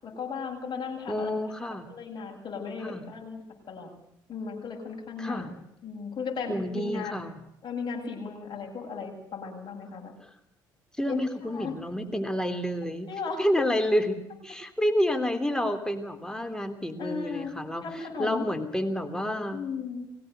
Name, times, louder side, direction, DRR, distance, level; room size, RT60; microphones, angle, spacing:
voice 1, 0.0-1.3 1.7-3.4 3.7-3.9 4.3-7.2 7.6-10.1 11.0-11.2 11.4-11.7 13.1-13.7 17.0-17.6 17.8-18.5 19.5-20.1, left 5 dB, 45° left, 0 dB, 7.8 m, -36 dB
voice 2, 1.1-1.9 2.8-3.0 5.2-5.5 6.5-7.4 11.0-13.1 13.4-19.6, equal, 5° left, 6 dB, 3.4 m, -29 dB
21.5 x 17.0 x 8.2 m, 0.78 s
hypercardioid pair, 60°, 10 cm